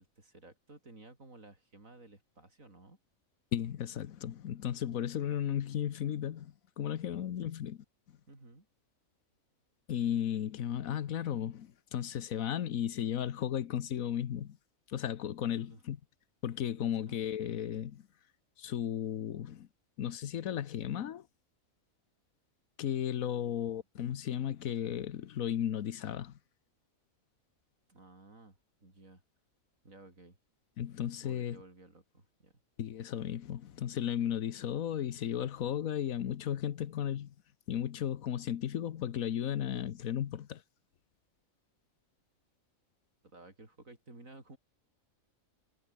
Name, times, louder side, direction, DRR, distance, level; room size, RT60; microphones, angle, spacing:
voice 1, 0.0-3.0 7.2-7.5 8.3-8.7 15.5-15.8 16.8-17.2 23.3-23.7 27.9-29.2 29.8-30.4 31.2-32.5 43.2-44.6, right 2 dB, 75° right, 5.7 m, -55 dB
voice 2, 3.5-7.8 9.9-14.6 14.9-16.0 16.4-18.1 18.6-19.7 20.0-21.3 22.8-26.4 30.8-31.6 32.8-37.3 37.7-40.6, left 10 dB, 85° left, 1.4 m, -35 dB
omnidirectional pair, 1.4 m